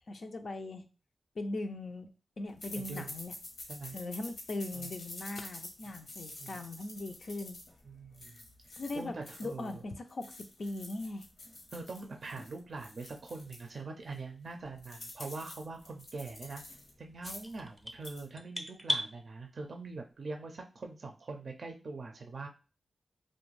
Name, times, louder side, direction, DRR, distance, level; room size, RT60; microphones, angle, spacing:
voice 1, 0.1-0.8 1.4-2.1 2.4-3.3 3.9-7.6 8.7-9.1 9.4-11.3, left 2 dB, 65° left, 6 dB, 0.4 m, -39 dB
sound 1, 2.6-9.8 10.1-13.7 14.1-14.2 14.5-16.9 17.2-17.6 17.9-18.2, left 2 dB, 80° left, 0.8 m, -48 dB
voice 2, 2.8-3.1 3.7-4.0 4.7-4.9 6.4-6.6 7.8-8.4 9.0-9.8 11.7-16.6 17.0-22.5, right 3 dB, 65° right, 3 dB, 0.4 m, -43 dB
sound 2, 17.2-19.1, equal, ahead, 0.5 m, -36 dB
2.5 x 2.1 x 3.1 m, 0.32 s
cardioid pair, 45°, 0 cm